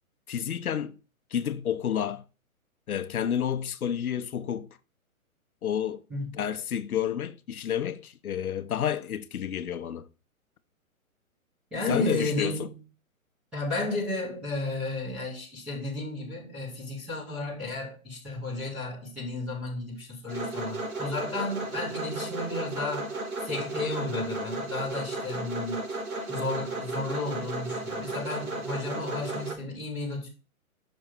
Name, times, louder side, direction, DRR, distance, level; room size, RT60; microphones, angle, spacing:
voice 1, 0.3-1.0 1.3-2.2 2.9-4.7 5.6-6.0 6.4-10.1 11.9-12.6, left 9 dB, 80° left, 0.8 m, -30 dB
voice 2, 11.7-12.8 13.5-23.1 23.4-26.0 26.3-30.3, left 2 dB, ahead, 0.5 m, -33 dB
sound 1, 20.3-29.5, right 2 dB, 80° right, 2.6 m, -34 dB
6.3 x 3.4 x 5.8 m
hypercardioid pair, 150°, 43 cm